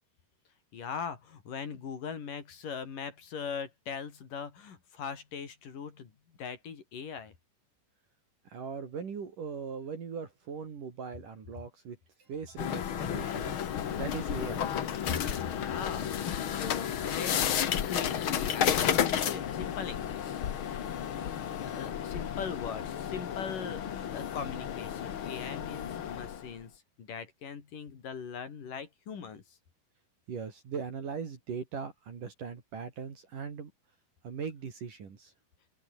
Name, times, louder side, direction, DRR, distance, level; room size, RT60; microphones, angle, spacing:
voice 1, 0.7-6.1 6.4-7.3 15.1-15.2 15.5-20.8 21.6-26.7 27.0-29.4, left 6 dB, 55° left, 4.8 m, -40 dB
voice 2, 8.4-14.8 30.3-33.7 34.2-35.3, right 6 dB, 55° right, 4.8 m, -40 dB
sound 1, 12.6-26.5, left 9 dB, 75° left, 1.2 m, -32 dB
omnidirectional pair, 4.5 m